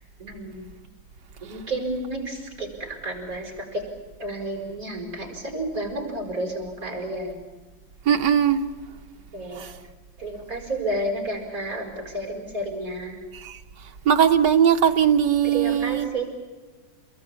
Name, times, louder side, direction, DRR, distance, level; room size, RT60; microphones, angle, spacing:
voice 1, 0.2-0.7 1.4-3.9 4.2-7.4 9.3-9.7 10.2-13.2 15.4-16.2, right 1 dB, 45° right, 6.3 m, -31 dB
voice 2, 8.1-8.6 9.6-9.7 13.4-13.6 14.1-16.1, right 8 dB, 65° right, 1.9 m, -19 dB
28.0 x 21.5 x 8.8 m
omnidirectional pair, 2.0 m